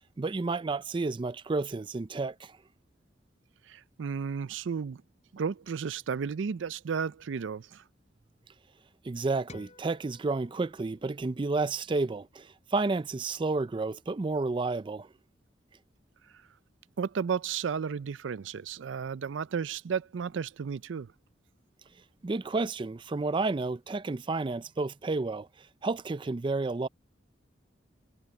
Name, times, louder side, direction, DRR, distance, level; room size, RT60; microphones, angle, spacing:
voice 1, 0.2-2.6 9.0-15.1 22.2-25.5 25.8-26.9, right 3 dB, 25° right, 0.4 m, -31 dB
voice 2, 3.7-5.0 5.3-7.8 17.0-21.1, right 6 dB, 85° right, 0.4 m, -33 dB
sound 1, 9.5-12.0, left 2 dB, 40° left, 4.2 m, -55 dB
head